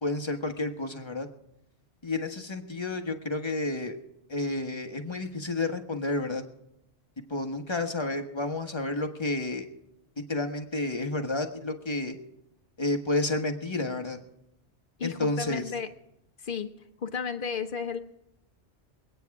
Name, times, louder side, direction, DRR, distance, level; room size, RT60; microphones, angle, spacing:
voice 1, 0.0-1.3 2.0-4.0 4.3-6.4 7.3-9.7 10.3-12.2 12.8-14.2 15.0-15.6, left 2 dB, 25° left, 4 dB, 1.3 m, -30 dB
voice 2, 15.0-15.9 16.4-16.7 17.0-18.0, left 6 dB, 45° left, 8 dB, 1.2 m, -33 dB
23.5 x 9.2 x 4.8 m, 0.79 s
omnidirectional pair, 1.2 m